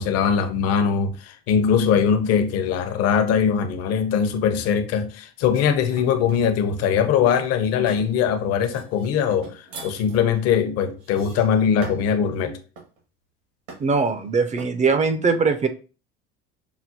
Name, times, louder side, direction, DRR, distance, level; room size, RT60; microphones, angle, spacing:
voice 1, 0.0-12.6, left 7 dB, 55° left, 0.7 m, -21 dB
sound 1, 5.5-6.5 7.3-8.1 8.6-12.2 12.7-13.0 13.7-14.1 14.6-14.8, right 4 dB, 85° right, 1.7 m, -42 dB
voice 2, 13.8-15.7, right 4 dB, 25° right, 0.4 m, -21 dB
5.9 x 2.0 x 2.8 m
supercardioid pair, 95°, 29 cm